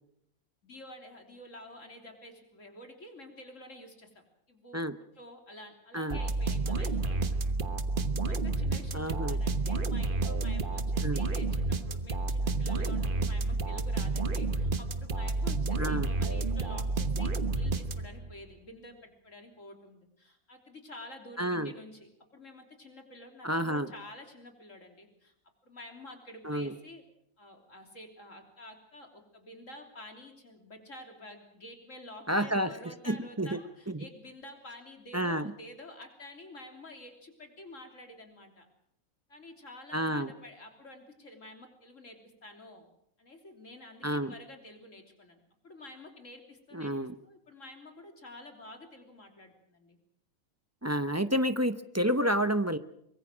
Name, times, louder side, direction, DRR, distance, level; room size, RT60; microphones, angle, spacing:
voice 1, 0.6-4.8 5.2-7.4 8.2-25.3 25.6-27.0 27.4-38.7 39.3-42.9 43.2-46.9 47.2-50.0, left 1 dB, 65° left, 4 dB, 3.6 m, -49 dB
sound 1, 6.1-18.3, right 3 dB, 40° right, 1.3 m, -30 dB
voice 2, 8.9-9.4 11.0-11.2 15.8-16.1 21.4-21.7 23.4-23.9 26.4-26.7 32.3-32.7 33.1-33.6 33.9-34.1 35.1-35.5 39.9-40.3 44.0-44.3 46.7-47.1 50.8-52.8, equal, 15° right, 10 dB, 0.6 m, -29 dB
24.0 x 22.5 x 6.2 m, 0.75 s
omnidirectional pair, 1.4 m